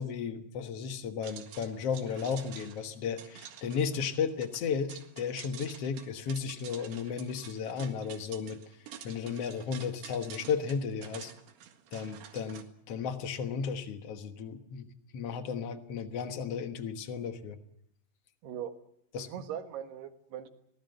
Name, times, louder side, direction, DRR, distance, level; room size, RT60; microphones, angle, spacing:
voice 1, 0.0-8.6 9.0-11.3 11.9-14.9 15.1-17.6 19.1-19.3, left 6 dB, 75° left, 8 dB, 1.4 m, -34 dB
sound 1, 1.2-12.6, right 9 dB, 90° right, 4.1 m, -49 dB
voice 2, 18.4-18.7 19.2-20.5, right 9 dB, 70° right, 7 dB, 3.6 m, -40 dB
24.0 x 18.5 x 8.0 m, 0.74 s
omnidirectional pair, 4.9 m